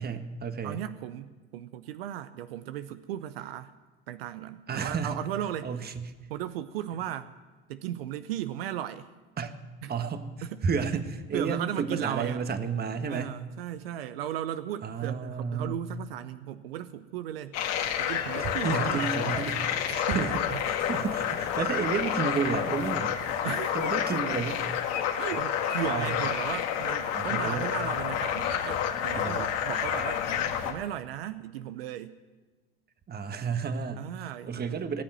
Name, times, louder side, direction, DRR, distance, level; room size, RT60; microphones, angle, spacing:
voice 1, 0.0-0.8 4.7-5.2 5.6-6.1 9.4-9.5 9.9-13.3 14.8-15.8 18.4-19.6 19.9-20.3 20.7-23.2 23.7-24.6 25.9-26.2 27.1-27.7 29.2-29.5 33.1-34.0 34.4-35.0, right 6 dB, 35° right, 9 dB, 1.4 m, -31 dB
voice 2, 0.6-3.7 4.1-5.7 6.3-7.3 7.7-9.1 9.8-9.9 10.4-10.6 10.9-11.0 11.3-12.4 13.1-17.6 18.0-19.1 19.8-20.6 23.4-23.9 25.2-32.1 34.0-34.8, right 11 dB, 85° right, 12 dB, 0.7 m, -36 dB
sound 1, 17.5-30.7, left 9 dB, 60° left, 2.0 m, -29 dB
18.0 x 7.4 x 9.0 m, 1.3 s
hypercardioid pair, 80°, 29 cm